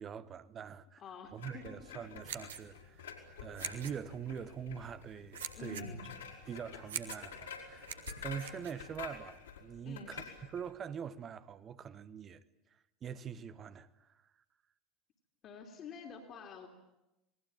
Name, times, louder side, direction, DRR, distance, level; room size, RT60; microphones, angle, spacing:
voice 1, 0.0-1.0 1.3-3.1 3.4-5.9 6.5-7.9 8.2-10.2 10.5-12.4 13.0-14.2, right 7 dB, 35° right, 1.2 m, -44 dB
voice 2, 1.0-1.9 5.6-6.1 9.8-10.3 15.4-16.7, left 5 dB, 40° left, 3.0 m, -48 dB
Fingers on Tire Spokes rough, 1.4-10.7, left 6 dB, 70° left, 4.8 m, -49 dB
sound 1, 2.0-9.4, right 9 dB, 70° right, 1.7 m, -46 dB
28.0 x 20.0 x 8.9 m
figure-of-eight pair, 70°, 0 cm